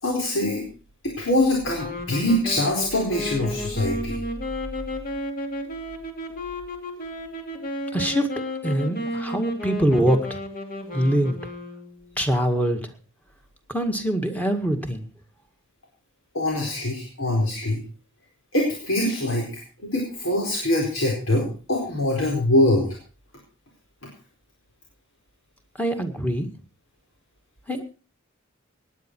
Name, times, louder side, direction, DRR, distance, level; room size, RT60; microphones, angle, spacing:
voice 1, 0.0-0.6 1.0-4.2 16.3-17.8 18.5-22.9, left 1 dB, 80° left, -1 dB, 4.4 m, -23 dB
sound 1, 1.8-12.2, left 1 dB, 45° left, 2.6 m, -33 dB
voice 2, 7.9-8.3 8.6-10.4 10.9-11.4 12.2-12.8 13.7-15.0 25.8-26.5 27.7-27.8, right 1 dB, 10° left, 5 dB, 1.9 m, -23 dB
18.5 x 10.0 x 4.7 m, 0.37 s
head